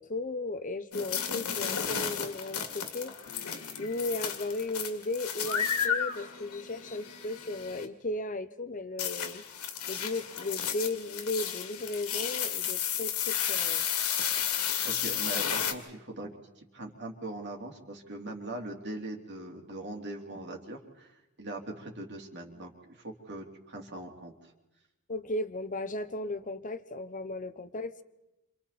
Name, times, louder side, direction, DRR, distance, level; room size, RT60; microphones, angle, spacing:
voice 1, 0.0-3.1 3.8-9.4 9.9-13.8 25.1-28.0, left 2 dB, 35° left, 12 dB, 1.1 m, -35 dB
sound 1, 0.9-7.9 9.0-15.7, left 8 dB, 85° left, 2.5 m, -33 dB
voice 2, 14.8-16.3 16.6-24.5, right 2 dB, 50° right, 1 dB, 3.5 m, -41 dB
29.5 x 27.0 x 4.3 m, 0.97 s
head